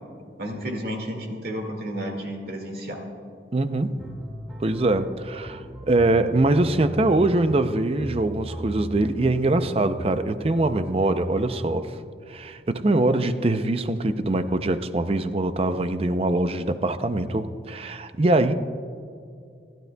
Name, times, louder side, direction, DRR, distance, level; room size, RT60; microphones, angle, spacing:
voice 1, 0.4-3.0, equal, 55° right, 2 dB, 2.0 m, -32 dB
voice 2, 3.5-4.1 4.6-11.9 12.3-18.5, right 2 dB, 35° right, 10 dB, 0.5 m, -23 dB
sound 1, 4.0-11.9, equal, 5° right, 1.6 m, -38 dB
27.0 x 12.0 x 2.3 m, 2.4 s
head